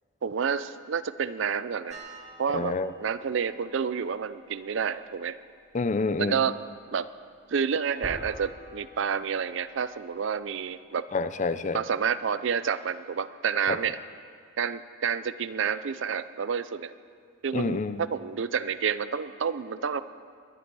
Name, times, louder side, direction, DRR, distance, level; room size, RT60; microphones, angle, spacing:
voice 1, 0.2-2.0 2.4-2.7 3.0-5.4 6.2-6.6 6.9-7.1 7.5-11.0 11.7-14.0 14.6-16.9 17.4-20.0, right 6 dB, 60° right, 14 dB, 0.4 m, -29 dB
sound 1, 1.9-10.8, right 1 dB, 30° right, 1.7 m, -49 dB
voice 2, 2.5-2.9 5.7-6.4 11.1-11.8 13.7-13.8 17.5-18.0, left 3 dB, 35° left, 12 dB, 0.4 m, -28 dB
21.0 x 11.0 x 4.7 m, 2.2 s
head